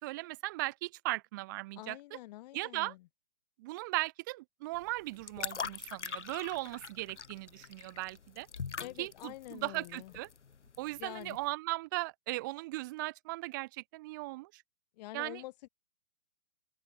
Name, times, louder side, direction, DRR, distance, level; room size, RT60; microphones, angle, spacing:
voice 1, 0.0-2.0 2.5-2.9 3.6-8.5 9.0-10.3 10.8-14.6 15.1-15.4, right 20 dB, 20° right, 0.6 m, -38 dB
voice 2, 1.7-3.1 8.8-10.1 11.0-11.4 15.0-15.7, left 17 dB, 35° left, 4.8 m, -46 dB
sound 1, 4.7-11.5, left 6 dB, 90° left, 4.0 m, -43 dB
open air
hypercardioid pair, 150°, 34 cm